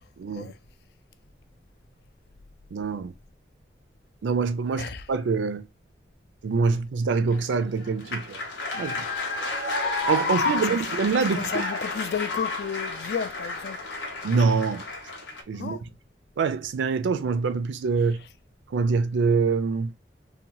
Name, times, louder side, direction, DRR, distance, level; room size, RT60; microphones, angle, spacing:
voice 1, 0.2-0.5 2.7-3.1 4.2-5.7 6.4-8.4 8.7-9.1 10.1-11.6 14.2-14.8 15.5-15.8 16.4-18.2 18.7-19.9, right 4 dB, 85° right, 0.4 m, -25 dB
sound 1, 7.3-15.4, left 3 dB, 85° left, 0.7 m, -30 dB
voice 2, 10.3-11.0 11.3-13.8 15.5-15.8, left 7 dB, 60° left, 0.3 m, -33 dB
2.7 x 2.1 x 2.9 m
head